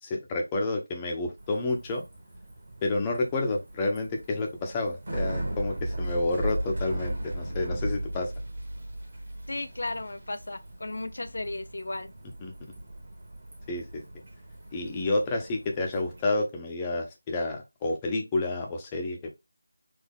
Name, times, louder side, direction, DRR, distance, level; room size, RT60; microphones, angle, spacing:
voice 1, 0.0-2.0 2.8-8.3 12.4-12.5 13.7-14.0 14.7-19.3, left 2 dB, 15° left, 0.8 m, -29 dB
Bicycle, 1.4-16.2, right 1 dB, 50° right, 2.0 m, -37 dB
voice 2, 9.5-12.1, left 2 dB, 65° left, 0.5 m, -35 dB
4.1 x 2.8 x 3.7 m
figure-of-eight pair, 170°, 0 cm